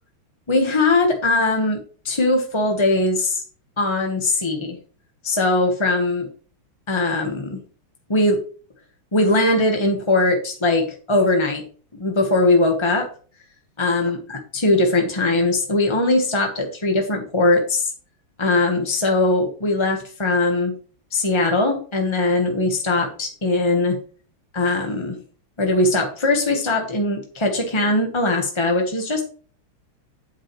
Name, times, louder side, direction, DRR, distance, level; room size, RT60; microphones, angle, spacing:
voice 1, 0.5-1.8 2.0-3.4 3.8-4.8 5.2-6.3 6.9-7.6 8.1-8.4 9.1-11.6 12.0-13.1 13.8-17.9 18.4-20.7 21.1-24.0 24.5-25.2 25.6-29.2, left 2 dB, 20° left, 3 dB, 0.9 m, -20 dB
9.8 x 8.5 x 3.2 m, 0.42 s
omnidirectional pair, 2.4 m